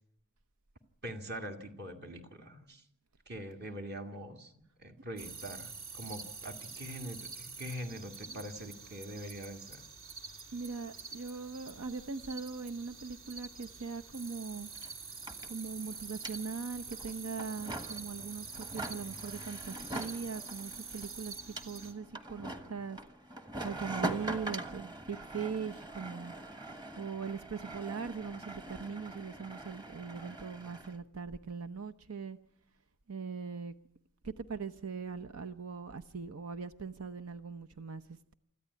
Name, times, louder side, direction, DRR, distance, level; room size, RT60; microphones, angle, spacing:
voice 1, 1.0-2.8 3.3-4.5 4.8-9.8, equal, 50° right, 2.2 m, -43 dB
sound 1, 5.2-21.9, right 4 dB, 65° right, 2.5 m, -46 dB
voice 2, 10.5-14.7 15.5-23.0 23.6-26.3 26.7-32.4 33.1-33.7 34.2-38.3, right 5 dB, 80° right, 0.8 m, -41 dB
sound 2, 14.1-14.2 14.4-31.0, right 1 dB, 20° right, 1.4 m, -43 dB
25.5 x 14.0 x 9.6 m
head